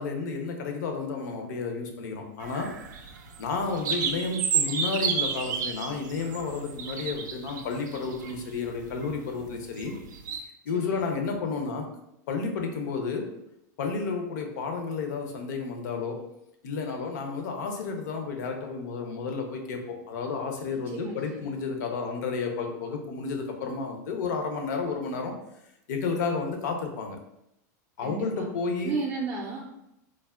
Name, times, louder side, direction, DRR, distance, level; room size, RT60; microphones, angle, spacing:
voice 1, 0.0-2.7 3.4-9.9 10.7-11.9 12.3-13.3 13.8-16.3 16.6-25.4 25.9-27.2 28.0-29.0, left 4 dB, 75° left, 3 dB, 0.6 m, -31 dB
sound 1, 2.4-10.4, right 6 dB, 90° right, 0.4 m, -32 dB
voice 2, 20.9-21.6 28.0-28.5 28.8-29.7, right 4 dB, 20° right, -4 dB, 0.4 m, -34 dB
3.3 x 2.1 x 2.3 m, 0.82 s
supercardioid pair, 135°, 10 cm